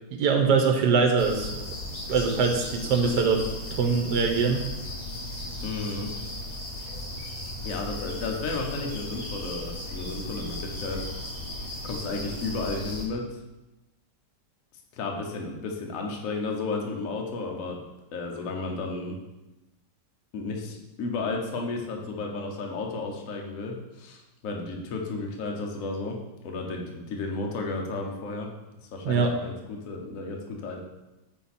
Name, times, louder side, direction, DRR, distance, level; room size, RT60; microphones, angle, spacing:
voice 1, 0.2-1.5 2.1-3.4 3.8-4.6 29.0-29.3, right 5 dB, 75° right, 3 dB, 1.4 m, -22 dB
sound 1, 1.2-13.0, left 1 dB, 30° left, 0.8 m, -36 dB
voice 2, 3.0-3.4 5.6-6.1 7.6-11.0 11.8-13.2 14.9-17.8 18.1-19.2 20.3-26.2 26.4-28.5 28.9-30.8, left 3 dB, 55° left, 1 dB, 1.1 m, -33 dB
6.0 x 4.1 x 4.1 m, 1.0 s
omnidirectional pair, 1.9 m